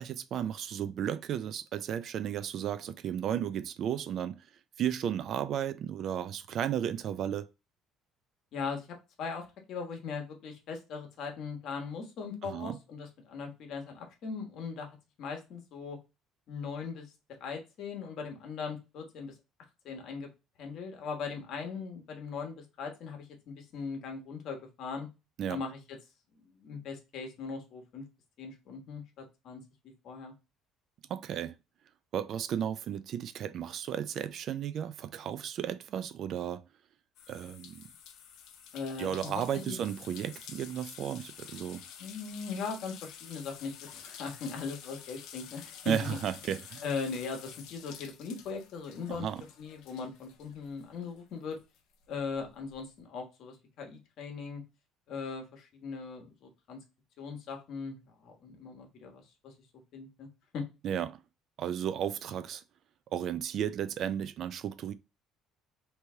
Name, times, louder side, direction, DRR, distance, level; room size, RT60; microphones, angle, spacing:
voice 1, 0.0-4.4 4.8-7.5 12.4-12.8 25.4-25.6 31.1-31.5 32.1-36.6 37.3-37.8 39.0-41.8 45.9-46.8 49.1-49.4 60.8-61.2 61.6-62.6 63.1-64.9, right 9 dB, 50° right, 0.3 m, -34 dB
voice 2, 8.5-8.9 9.2-16.0 16.5-17.1 17.4-19.3 19.8-20.3 20.6-25.1 25.5-26.0 26.6-28.0 28.4-29.6 30.0-30.3 38.7-39.8 42.0-46.2 46.8-51.6 52.1-54.6 55.1-56.8 57.2-59.5 59.9-60.3 60.5-60.6, left 5 dB, 55° left, 1.2 m, -39 dB
Bath Filling (No Plug), 37.2-51.2 51.5-52.7, left 8 dB, 75° left, 0.7 m, -50 dB
3.1 x 2.8 x 3.3 m
cardioid pair, 135°, 0 cm